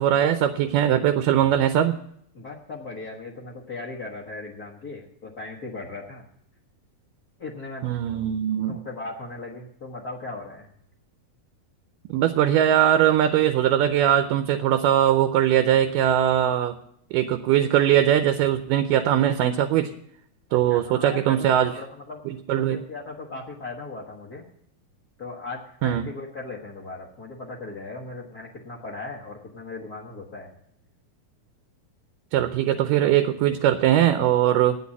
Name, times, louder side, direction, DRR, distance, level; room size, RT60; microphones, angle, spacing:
voice 1, 0.0-2.0 7.8-8.8 12.1-16.8 17.1-19.9 20.5-21.7 22.3-22.8 25.8-26.1 32.3-34.8, right 11 dB, 80° right, 9 dB, 2.1 m, -21 dB
voice 2, 2.3-6.2 7.4-7.8 8.7-10.7 20.5-22.2 22.5-24.5 25.2-30.5, left 3 dB, 80° left, -1 dB, 0.8 m, -38 dB
9.2 x 8.5 x 8.2 m, 0.70 s
omnidirectional pair, 4.1 m